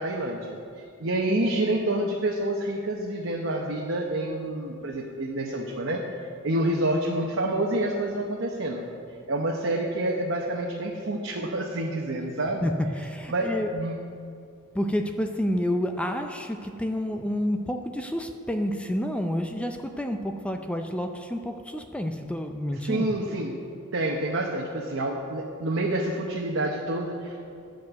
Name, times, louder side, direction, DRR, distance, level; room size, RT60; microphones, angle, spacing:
voice 1, 0.0-6.0 6.4-8.9 9.3-12.7 13.3-14.0 22.9-23.6 23.9-27.4, right 1 dB, 60° right, -1 dB, 0.9 m, -28 dB
voice 2, 12.6-13.7 14.7-23.2, equal, 5° left, 5 dB, 0.4 m, -29 dB
11.5 x 5.2 x 7.9 m, 2.4 s
head